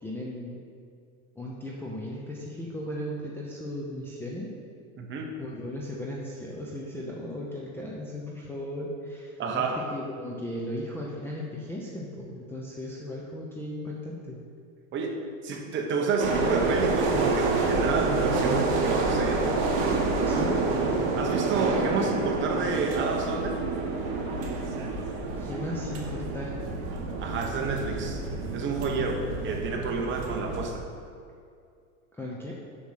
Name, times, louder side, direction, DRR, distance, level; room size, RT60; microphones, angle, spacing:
voice 1, 0.0-0.6 1.4-4.5 5.4-14.4 20.3-20.6 25.4-26.5 32.1-32.5, left 1 dB, 5° left, -4 dB, 0.6 m, -36 dB
voice 2, 5.0-5.3 9.4-9.8 14.9-15.2 15.4-19.6 21.1-23.6 27.2-28.2 28.5-30.9, right 4 dB, 30° right, 2 dB, 1.1 m, -29 dB
sound 1, 16.2-30.6, right 3 dB, 50° right, 1.6 m, -28 dB
7.3 x 6.3 x 5.7 m, 2.3 s
supercardioid pair, 140°, 40 cm